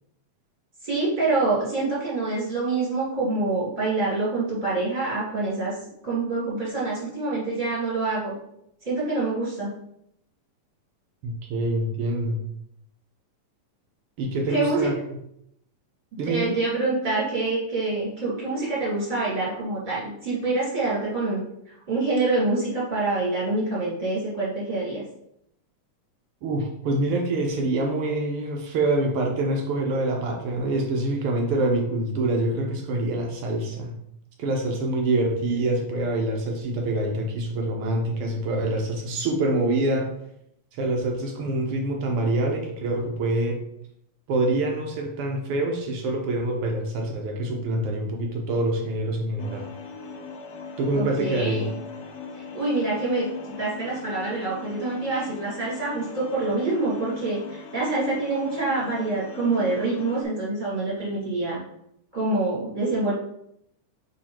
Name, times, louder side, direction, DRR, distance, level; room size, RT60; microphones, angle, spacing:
voice 1, 0.8-5.7 6.0-8.3 8.8-9.7 14.5-14.9 16.2-21.4 21.9-25.0 50.9-51.7 52.5-53.3 53.6-61.6 62.1-63.1, right 3 dB, 15° right, -7 dB, 2.2 m, -26 dB
voice 2, 11.2-12.4 14.2-15.0 16.2-16.5 26.4-33.9 34.4-40.1 40.7-43.6 44.3-49.7 50.8-51.7, right 2 dB, 75° right, 1 dB, 1.3 m, -25 dB
sound 1, 49.4-60.2, left 5 dB, 80° left, 2.4 m, -39 dB
5.3 x 4.1 x 4.3 m, 0.75 s
omnidirectional pair, 3.7 m